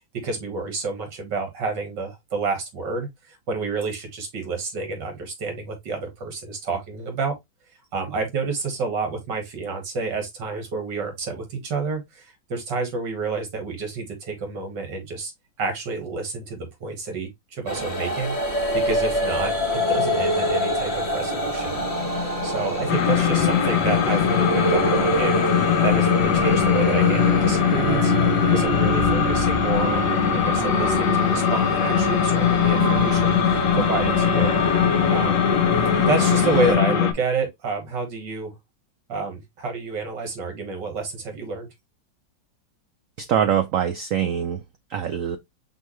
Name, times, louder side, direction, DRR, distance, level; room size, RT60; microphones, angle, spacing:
voice 1, 0.2-7.4 7.9-15.3 15.6-18.4 18.7-21.8 22.2-25.4 25.8-28.1 28.5-34.5 35.1-35.5 36.1-38.6 39.1-41.7, right 4 dB, 70° right, 2.1 m, -29 dB
sound 1, 17.7-36.7, equal, 20° left, 1.1 m, -25 dB
sound 2, 22.9-37.1, left 9 dB, 70° left, 1.1 m, -21 dB
voice 2, 43.2-44.6 44.9-45.4, right 9 dB, 85° right, 0.7 m, -23 dB
5.5 x 3.1 x 3.0 m
omnidirectional pair, 2.0 m